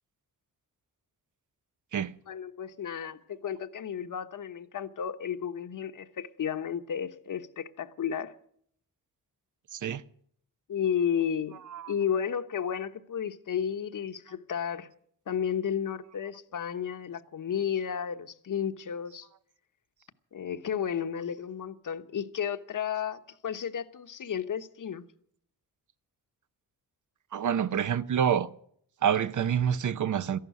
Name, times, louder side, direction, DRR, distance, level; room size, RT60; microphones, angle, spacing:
voice 1, 2.3-8.3 10.7-11.6 11.9-14.9 15.3-19.3 20.3-25.0, left 8 dB, 60° left, 1.1 m, -32 dB
voice 2, 9.7-10.0 11.7-11.9 27.3-28.5 29.0-30.4, right 8 dB, 55° right, 0.7 m, -27 dB
14.0 x 11.5 x 9.2 m
cardioid pair, 110°, 36 cm